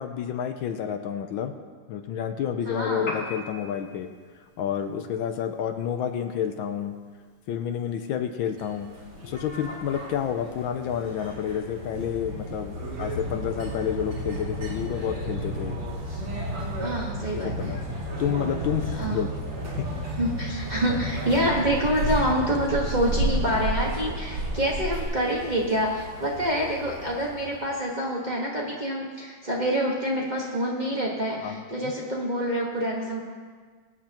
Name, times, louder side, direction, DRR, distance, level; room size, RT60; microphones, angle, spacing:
voice 1, 0.0-1.5 1.9-4.1 4.6-6.9 7.5-8.9 9.2-15.8 17.3-17.8 18.2-19.3 19.8-19.9 31.4-31.7, left 8 dB, 75° left, 7 dB, 1.4 m, -29 dB
voice 2, 2.7-3.1 16.8-17.8 18.9-19.3 20.2-33.2, equal, 25° right, -3 dB, 1.3 m, -27 dB
Piano, 3.0-11.0, left 2 dB, 55° left, 2.2 m, -45 dB
sound 1, 8.5-27.7, equal, 85° right, 3.1 m, -35 dB
sound 2, 12.9-25.0, right 2 dB, 60° right, 1.6 m, -34 dB
22.0 x 8.5 x 3.0 m, 1.5 s
omnidirectional pair, 2.3 m